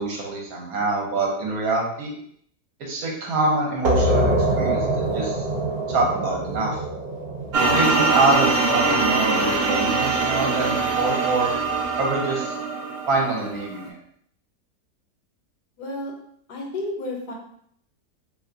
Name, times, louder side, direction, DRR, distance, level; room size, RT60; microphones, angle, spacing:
voice 1, 0.0-2.1 2.8-4.8 5.1-5.4 5.9-6.8 7.6-11.5 12.0-12.5 13.1-13.9, right 3 dB, 65° right, -2 dB, 1.1 m, -25 dB
sound 1, 3.8-9.2, right 1 dB, 45° right, 0.9 m, -25 dB
sound 2, 7.5-13.8, right 3 dB, 90° right, 0.5 m, -23 dB
voice 2, 15.8-16.1 16.5-17.3, left 2 dB, 75° left, 0 dB, 1.2 m, -31 dB
2.8 x 2.2 x 3.7 m, 0.67 s
omnidirectional pair, 1.8 m